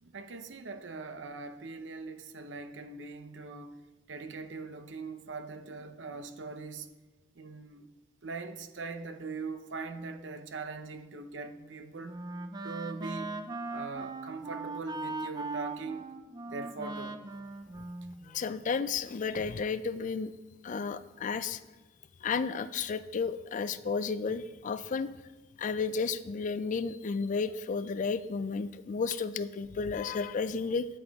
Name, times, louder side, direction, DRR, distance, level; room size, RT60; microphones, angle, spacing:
voice 1, 0.0-6.9 7.3-7.9 8.2-12.2 12.6-13.4 13.7-16.1 16.4-17.2, right 4 dB, 80° right, 0.7 m, -41 dB
Wind instrument woodwind instrument, 11.6-18.7, right 3 dB, 20° right, 0.5 m, -40 dB
voice 2, 18.3-20.3 20.6-21.6 22.2-25.1 25.6-30.9, left 5 dB, 45° left, 0.4 m, -32 dB
9.2 x 8.7 x 3.6 m
head